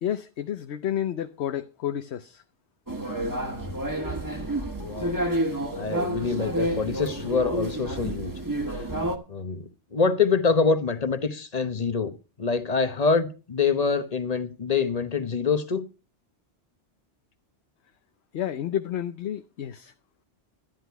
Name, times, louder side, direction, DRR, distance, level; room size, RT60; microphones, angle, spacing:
voice 1, 0.0-2.4 18.3-19.9, left 10 dB, 70° left, 1.0 m, -30 dB
sound 1, 2.9-9.2, right 1 dB, 15° right, 1.5 m, -29 dB
voice 2, 4.8-5.2 5.7-8.3 9.3-9.6 9.9-12.1 12.4-15.8, left 5 dB, 35° left, 1.1 m, -25 dB
12.5 x 10.0 x 4.7 m
omnidirectional pair, 1.2 m